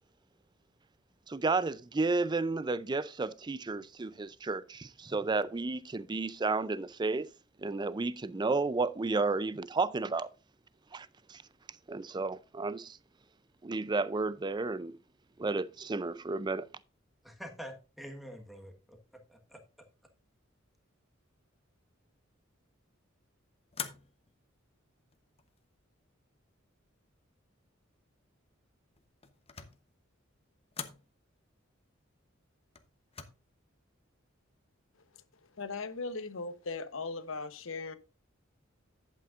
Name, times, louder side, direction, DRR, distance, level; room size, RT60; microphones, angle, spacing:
voice 1, 1.3-7.3 7.6-10.3 10.9-11.4 11.9-13.0 13.6-15.0 15.4-16.7, right 3 dB, 20° right, 0.4 m, -32 dB
voice 2, 17.2-19.0 19.3-19.6, equal, ahead, 1.4 m, -46 dB
sound 1, 23.7-24.4 25.1-25.7 29.0-29.9 30.7-31.1 32.8-33.2, left 7 dB, 30° left, 0.9 m, -43 dB
voice 3, 35.6-38.0, left 3 dB, 80° left, 0.9 m, -38 dB
11.0 x 8.5 x 2.5 m
head